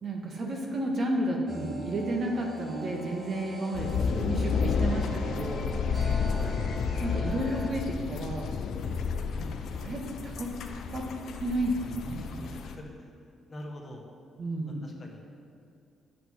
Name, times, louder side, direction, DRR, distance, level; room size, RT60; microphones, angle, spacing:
voice 1, 0.0-5.7 7.0-8.5 9.3-9.5 9.8-10.5 10.9-11.1 11.4-12.8 14.4-14.9, right 1 dB, 50° right, 0 dB, 1.8 m, -32 dB
sound 1, 1.5-7.7, equal, 25° right, 2.7 m, -42 dB
sound 2, 3.7-12.7, left 5 dB, 70° left, 0.7 m, -31 dB
voice 2, 6.3-6.6 12.5-13.1 13.5-14.0 14.8-15.2, left 1 dB, 35° left, 1 dB, 1.6 m, -43 dB
8.5 x 7.6 x 6.3 m, 2.4 s
cardioid pair, 90°, 0 cm